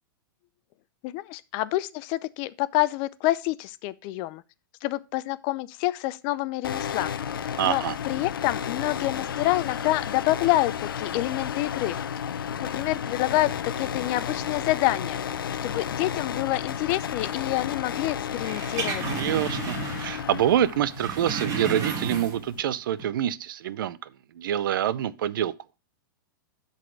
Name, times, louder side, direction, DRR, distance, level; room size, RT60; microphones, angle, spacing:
voice 1, 1.0-4.4 4.8-7.1 7.6-12.0 12.6-15.2 15.6-19.0, left 17 dB, 45° left, 0.5 m, -27 dB
sound 1, 6.6-22.6, left 8 dB, 90° left, 0.7 m, -33 dB
voice 2, 7.6-8.0 19.2-24.0 24.3-25.5, right 10 dB, 75° right, 0.6 m, -26 dB
sound 2, 18.3-20.3 20.6-22.6 22.9-23.0, right 5 dB, 30° right, 2.4 m, -32 dB
11.0 x 4.2 x 4.6 m
hypercardioid pair, 130°, 11 cm